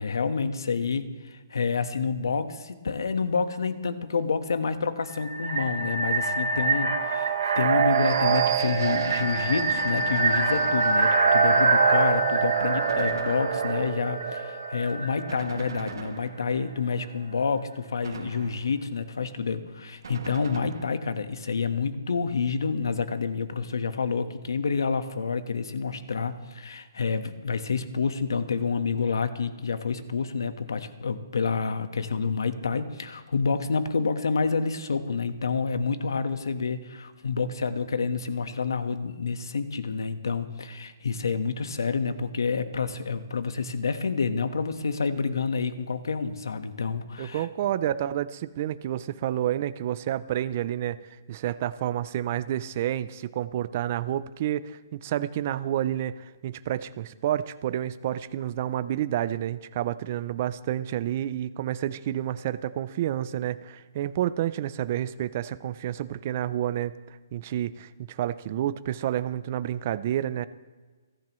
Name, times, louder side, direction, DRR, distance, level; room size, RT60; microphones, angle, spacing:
voice 1, 0.0-47.5, left 5 dB, 85° left, 10 dB, 1.2 m, -28 dB
sound 1, 5.1-15.9, right 4 dB, 65° right, 1.5 m, -24 dB
Gunshot gunfire, 8.8-11.3 12.9-13.9 15.3-16.7 18.0-18.8 20.0-21.2, right 4 dB, 85° right, 2.1 m, -40 dB
voice 2, 47.2-70.5, right 11 dB, 30° right, 14 dB, 0.4 m, -29 dB
29.0 x 10.5 x 3.1 m, 1.4 s
hypercardioid pair, 175°, 2 cm